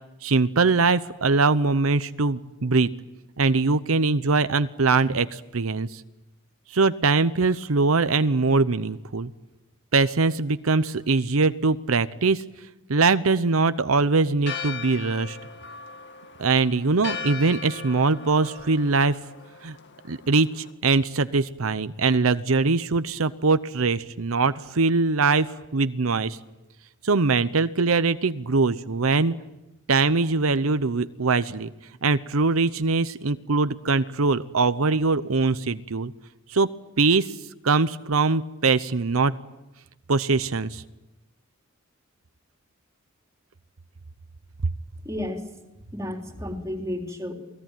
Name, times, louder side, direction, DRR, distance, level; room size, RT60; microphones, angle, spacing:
voice 1, 0.2-2.9 3.4-6.0 6.7-9.3 9.9-12.4 12.9-15.4 16.4-19.2 19.6-19.8 20.1-26.4 27.0-29.3 29.9-31.7 32.0-36.1 36.5-36.7 37.0-37.3 37.6-39.3 40.1-40.8, right 4 dB, 85° right, 12 dB, 0.8 m, -22 dB
Church bell, 14.4-20.7, left 5 dB, 60° left, 2.3 m, -38 dB
voice 2, 45.0-45.5 45.8-47.3, left 1 dB, 15° right, 2 dB, 3.9 m, -32 dB
28.5 x 19.5 x 9.2 m, 0.97 s
head